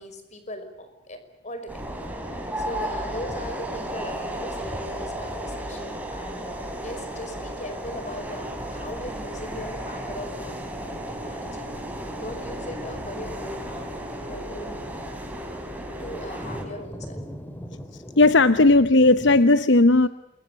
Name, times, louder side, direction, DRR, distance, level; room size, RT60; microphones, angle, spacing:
voice 1, 0.0-1.8 2.6-10.6 11.1-11.7 12.2-13.9 14.3-14.9 15.7-17.2, equal, 40° left, 9 dB, 5.5 m, -39 dB
sound 1, 1.7-3.7 4.1-4.2 4.6-19.4, equal, 10° left, 3.0 m, -45 dB
sound 2, 1.7-16.6, right 1 dB, 10° right, 5.1 m, -34 dB
voice 2, 18.2-20.1, left 2 dB, 70° left, 12 dB, 0.9 m, -16 dB
28.0 x 22.5 x 8.3 m, 0.92 s
head